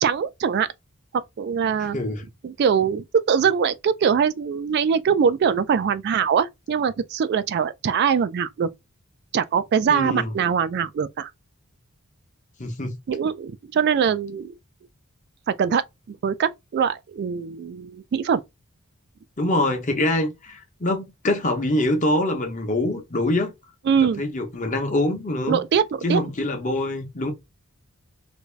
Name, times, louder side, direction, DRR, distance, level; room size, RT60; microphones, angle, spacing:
voice 1, 0.0-0.7 1.4-2.0 2.4-8.7 9.3-11.3 13.1-14.5 15.5-18.4 23.9-24.2 25.5-26.2, right 7 dB, 50° right, 0.3 m, -22 dB
voice 2, 1.9-2.2 9.9-10.3 12.6-12.9 19.4-23.5 24.2-25.6 26.0-27.3, left 1 dB, 35° left, 0.8 m, -24 dB
2.9 x 2.7 x 3.2 m
head